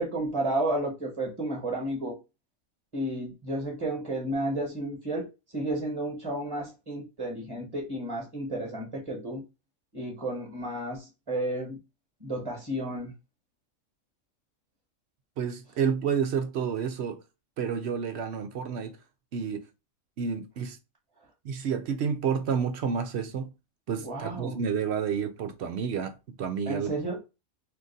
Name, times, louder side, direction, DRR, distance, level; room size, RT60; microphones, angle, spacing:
voice 1, 0.0-2.2 2.9-9.4 9.9-11.8 12.2-13.1 24.0-24.6 26.7-27.2, right 1 dB, 25° right, 1.1 m, -32 dB
voice 2, 15.4-17.2 17.6-19.0 19.3-19.7 20.2-20.8 21.4-23.5 23.9-26.9, right 7 dB, 65° right, 0.7 m, -30 dB
2.8 x 2.5 x 3.8 m
omnidirectional pair, 1.4 m